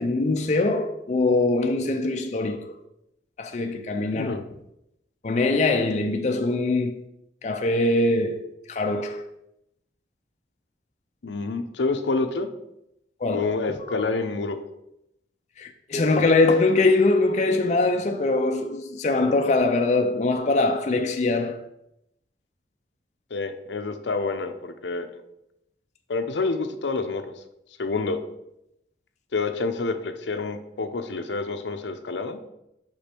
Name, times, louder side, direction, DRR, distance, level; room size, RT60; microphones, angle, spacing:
voice 1, 0.0-2.8 3.4-4.3 5.2-7.0 7.4-9.3 13.2-13.5 15.6-21.6, left 2 dB, 40° left, 0.4 m, -22 dB
voice 2, 4.1-4.4 11.2-12.5 13.3-14.6 23.3-25.2 26.1-27.2 27.8-28.2 29.3-32.4, left 3 dB, 80° left, 0.6 m, -28 dB
5.2 x 5.2 x 4.4 m
head